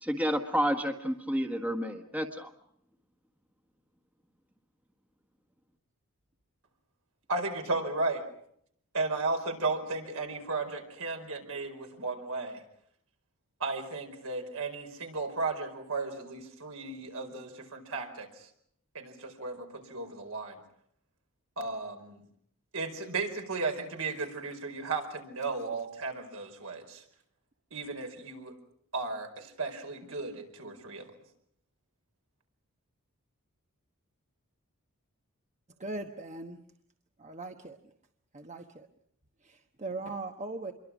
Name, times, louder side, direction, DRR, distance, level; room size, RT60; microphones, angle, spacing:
voice 1, 0.0-2.5, equal, 5° right, 5 dB, 1.5 m, -30 dB
voice 2, 7.3-8.2 8.9-12.6 13.6-18.4 18.9-20.6 21.6-22.2 22.7-27.0 27.7-28.5 28.9-31.1, right 3 dB, 70° right, 4 dB, 4.9 m, -35 dB
voice 3, 35.8-36.6 37.2-37.8 38.3-38.9 39.4-40.7, right 2 dB, 30° right, 5 dB, 1.2 m, -39 dB
27.0 x 23.5 x 6.2 m, 0.68 s
head